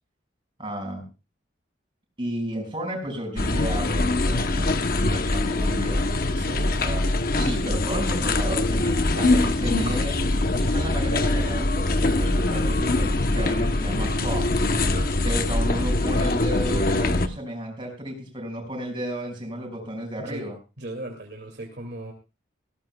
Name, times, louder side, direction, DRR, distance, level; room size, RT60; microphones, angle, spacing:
voice 1, 0.6-1.0 2.2-6.0 6.8-7.0 7.3-10.2 10.5-14.5 15.2-20.6, right 1 dB, 25° right, 1 dB, 5.7 m, -33 dB
sound 1, 3.4-17.3, left 2 dB, 45° left, 0.9 m, -23 dB
voice 2, 6.3-6.8 9.1-9.4 14.8-15.9 20.2-20.5 20.8-22.1, right 1 dB, 55° right, 2 dB, 2.3 m, -37 dB
19.0 x 17.0 x 2.3 m, 0.30 s
head